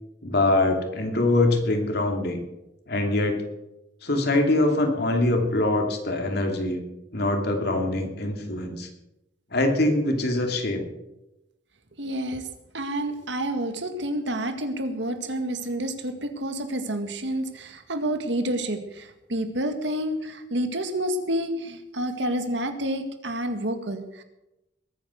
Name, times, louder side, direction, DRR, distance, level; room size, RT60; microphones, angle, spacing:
voice 1, 0.2-2.4 2.9-3.4 4.0-6.8 7.1-8.9 9.5-10.9, left 2 dB, 60° left, 3 dB, 2.8 m, -23 dB
voice 2, 12.0-12.5 12.7-24.2, right 1 dB, 70° right, 7 dB, 1.9 m, -29 dB
21.5 x 9.3 x 6.4 m, 0.94 s
head